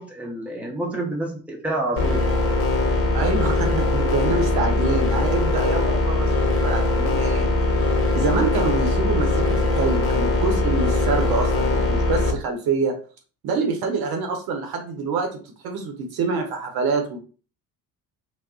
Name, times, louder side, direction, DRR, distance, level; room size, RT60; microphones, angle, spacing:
voice 1, 0.0-2.2, right 2 dB, 5° right, -1 dB, 0.8 m, -28 dB
sound 1, 2.0-12.3, left 2 dB, 30° left, 1.1 m, -21 dB
voice 2, 3.1-7.5 8.1-13.0 13.4-17.2, right 4 dB, 50° right, 3 dB, 0.8 m, -26 dB
2.3 x 2.0 x 3.7 m, 0.39 s
figure-of-eight pair, 50°, 48 cm